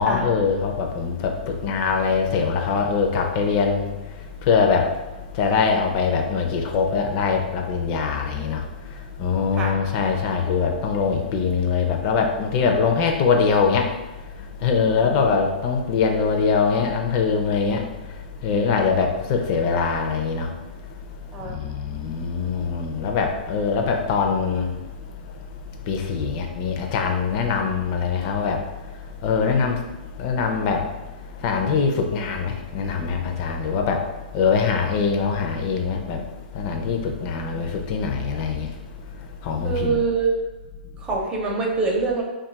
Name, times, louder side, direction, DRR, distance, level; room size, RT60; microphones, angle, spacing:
voice 1, 0.0-3.8 4.5-4.9 5.4-8.6 9.2-13.9 14.6-17.8 18.4-20.5 21.5-24.7 25.9-28.6 29.2-29.8 30.2-30.8 31.4-34.0 34.3-36.2 36.6-38.7 39.4-40.0, left 5 dB, 40° left, 3 dB, 0.5 m, -22 dB
voice 2, 21.3-21.6 37.5-37.6 39.6-40.3 41.0-42.2, right 4 dB, 20° right, -2 dB, 0.6 m, -25 dB
2.5 x 2.3 x 3.8 m, 1.1 s
hypercardioid pair, 140°, 5 cm